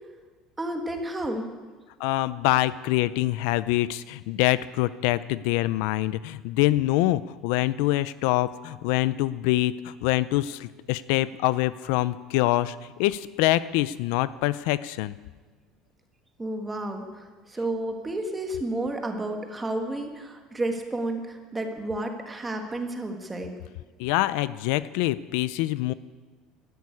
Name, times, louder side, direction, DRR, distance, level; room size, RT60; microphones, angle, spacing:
voice 1, 0.6-1.5 16.4-23.5, right 1 dB, 10° right, 4 dB, 1.5 m, -31 dB
voice 2, 2.0-15.1 24.0-25.9, left 16 dB, 70° left, 16 dB, 0.4 m, -25 dB
13.0 x 11.0 x 9.7 m, 1.4 s
cardioid pair, 175°, 0 cm